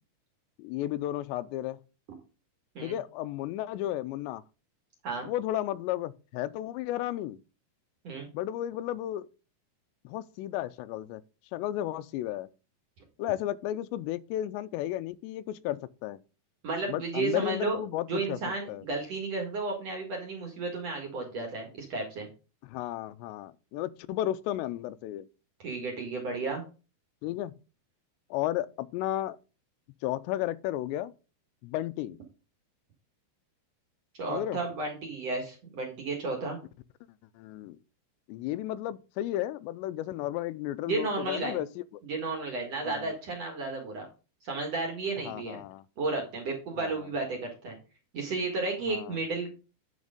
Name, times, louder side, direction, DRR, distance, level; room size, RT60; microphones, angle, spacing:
voice 1, 0.6-1.8 2.8-4.4 5.2-7.4 8.3-9.3 10.0-11.2 11.5-12.5 13.2-16.2 16.9-18.4 18.7-18.8 22.6-25.3 27.2-27.5 28.3-29.4 30.0-31.1 31.6-32.2 34.3-34.6 37.4-37.8 38.3-42.0 42.8-43.1 45.3-45.8 46.8-46.9 48.9-49.2, left 13 dB, 90° left, 2.8 m, -33 dB
voice 2, 16.6-17.8 18.1-22.3 25.6-26.6 34.1-36.6 40.9-41.6 42.1-44.1 44.4-45.6 46.0-47.8 48.1-49.5, right 3 dB, 50° right, 2.3 m, -33 dB
9.5 x 5.2 x 5.0 m
omnidirectional pair, 5.0 m